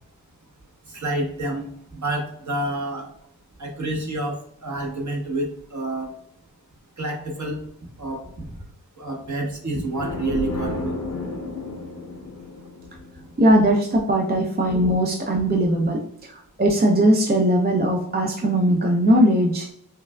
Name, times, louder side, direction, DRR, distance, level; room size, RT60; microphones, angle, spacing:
voice 1, 0.9-3.1 3.6-4.4 4.6-6.1 7.0-7.6 8.0-8.5 9.0-10.9, right 2 dB, 50° right, 0 dB, 1.2 m, -28 dB
sound 1, 9.9-13.6, left 2 dB, 45° left, 0.7 m, -32 dB
voice 2, 13.4-16.0 16.3-19.7, right 1 dB, 25° right, 1 dB, 0.5 m, -19 dB
5.6 x 2.4 x 2.2 m, 0.71 s
wide cardioid pair, 80°, 38 cm